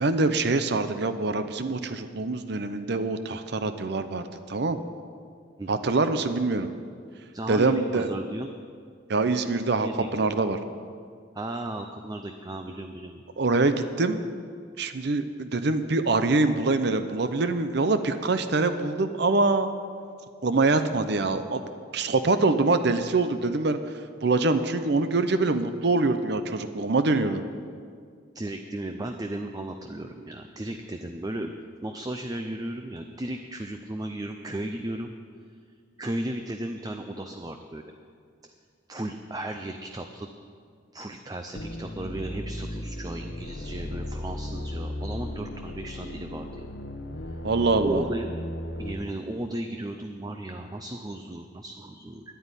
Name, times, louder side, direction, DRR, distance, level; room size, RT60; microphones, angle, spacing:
voice 1, 0.0-4.8 5.7-6.7 7.5-8.1 9.1-10.6 13.4-14.2 14.8-19.7 20.4-21.6 21.9-23.9 24.2-27.5 47.4-48.0, right 3 dB, 60° right, 10 dB, 0.7 m, -24 dB
voice 2, 7.3-8.5 9.8-10.2 11.3-13.2 28.3-31.5 31.8-35.1 36.0-37.9 38.9-40.3 40.9-46.7 47.3-47.4 47.8-48.3 48.8-52.2, right 1 dB, 20° right, 5 dB, 0.5 m, -35 dB
sound 1, 41.5-48.9, left 1 dB, 75° left, 1.1 m, -36 dB
10.5 x 9.3 x 9.8 m, 2.1 s
head